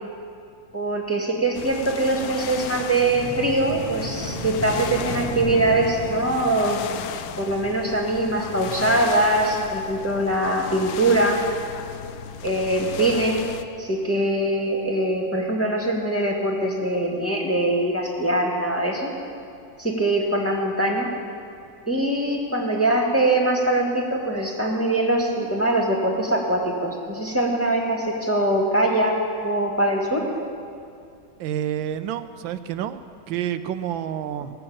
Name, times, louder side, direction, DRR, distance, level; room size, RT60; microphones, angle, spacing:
voice 1, 0.7-6.8 7.4-11.4 12.4-13.4 13.8-19.1 19.8-21.1 21.9-29.1 29.4-30.2, right 1 dB, 5° left, -2 dB, 1.5 m, -22 dB
sound 1, 1.5-13.6, left 9 dB, 80° left, 1.4 m, -35 dB
sound 2, 2.8-6.7, right 2 dB, 20° right, 1.5 m, -33 dB
voice 2, 31.4-33.0 33.3-34.5, right 10 dB, 80° right, 12 dB, 1.4 m, -28 dB
17.5 x 6.9 x 8.6 m, 2.4 s
omnidirectional pair, 2.1 m